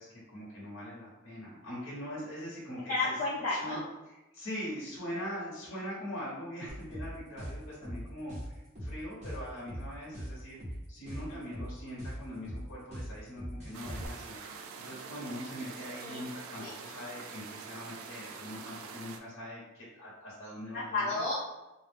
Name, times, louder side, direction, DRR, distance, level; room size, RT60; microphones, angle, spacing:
voice 1, 0.0-2.9 3.5-3.8 4.3-14.4 14.9-21.2, equal, 80° left, -6 dB, 0.8 m, -42 dB
voice 2, 2.9-3.8 11.3-11.6 15.8-16.2 16.6-16.7 20.7-21.3, left 3 dB, 45° left, -9 dB, 0.6 m, -33 dB
sound 1, 6.7-14.1, equal, 35° right, 0.8 m, -40 dB
sound 2, 13.7-19.2, right 5 dB, 85° right, 0.3 m, -45 dB
2.3 x 2.0 x 3.2 m, 1.0 s
head